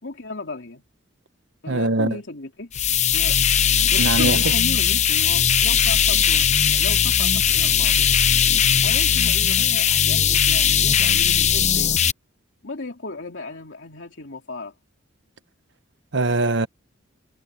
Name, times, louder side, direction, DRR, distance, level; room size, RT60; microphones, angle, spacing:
voice 1, 0.0-0.8 1.6-2.7 3.1-3.4 3.9-6.5 6.7-8.1 8.8-12.0 12.6-14.7, left 2 dB, 65° left, 3.1 m, -35 dB
voice 2, 1.7-2.2 4.0-4.5 16.1-16.7, right 2 dB, 60° right, 1.1 m, -22 dB
sound 1, 2.7-4.2 4.5-7.2 7.5-8.6, left 1 dB, 80° left, 4.5 m, -46 dB
sound 2, 2.7-12.1, left 8 dB, 35° left, 0.8 m, -19 dB
head